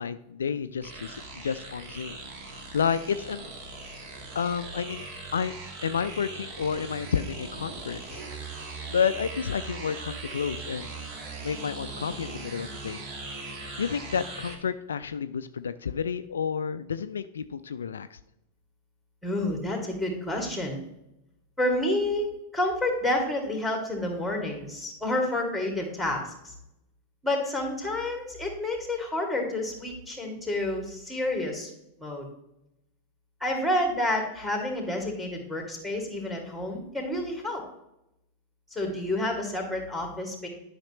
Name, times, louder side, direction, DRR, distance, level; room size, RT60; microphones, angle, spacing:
voice 1, 0.0-2.2 2.7-3.5 4.3-5.1 5.3-5.6 5.8-8.2 8.9-11.0 11.4-13.0 13.8-18.2, left 7 dB, 70° left, 12 dB, 0.3 m, -30 dB
sound 1, 0.8-14.6, right 3 dB, 35° right, 1.5 m, -40 dB
voice 2, 19.2-20.8 21.6-22.3 22.5-26.5 27.2-31.7 32.0-32.3 33.4-37.6 38.7-40.5, left 1 dB, ahead, 2 dB, 2.3 m, -29 dB
11.5 x 5.8 x 3.0 m, 0.85 s
figure-of-eight pair, 90°, 0 cm